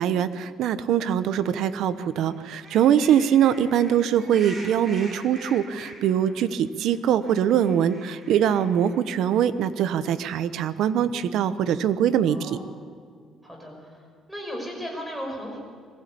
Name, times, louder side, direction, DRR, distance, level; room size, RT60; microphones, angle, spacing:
voice 1, 0.0-12.6, right 9 dB, 70° right, 13 dB, 1.0 m, -23 dB
sound 1, 1.4-1.7 2.1-6.4 6.7-6.8 6.9-9.7, right 2 dB, 30° right, 5.3 m, -44 dB
voice 2, 12.3-12.6 13.4-14.0 14.3-15.6, equal, 5° right, 0 dB, 5.7 m, -35 dB
21.5 x 15.5 x 8.5 m, 2.1 s
cardioid pair, 145°, 0 cm